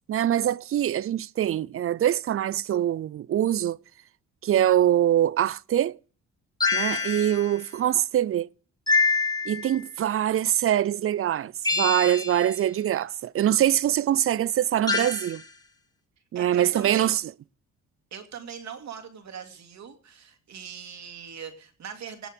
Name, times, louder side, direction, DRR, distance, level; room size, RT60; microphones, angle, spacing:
voice 1, 0.1-3.8 4.4-6.0 6.7-8.5 9.5-15.4 16.3-17.2, right 11 dB, 50° right, 0.5 m, -24 dB
sound 1, 6.6-7.6 8.9-9.8 11.6-12.6 14.9-15.4, left 4 dB, 15° left, 1.9 m, -26 dB
voice 2, 16.3-17.1 18.1-22.3, right 7 dB, 65° right, 2.7 m, -40 dB
18.5 x 7.3 x 5.2 m
cardioid pair, 90°, 30 cm